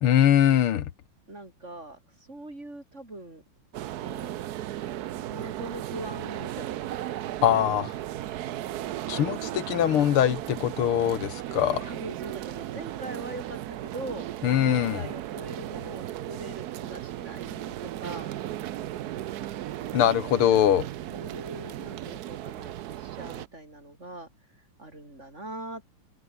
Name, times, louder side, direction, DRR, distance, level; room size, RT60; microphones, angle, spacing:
voice 1, 0.0-0.9 7.4-7.9 9.1-11.9 14.4-15.0 19.9-20.9, left 10 dB, 85° left, 2.1 m, -22 dB
voice 2, 1.3-2.0 2.3-3.4 4.0-4.3 5.3-7.1 11.8-14.3 14.6-18.3 20.3-20.4 20.7-20.8 21.1-24.3 24.8-25.8, right 2 dB, 30° right, 6.0 m, -41 dB
sound 1, 3.7-23.5, right 13 dB, 65° right, 1.0 m, -36 dB
open air
omnidirectional pair, 2.3 m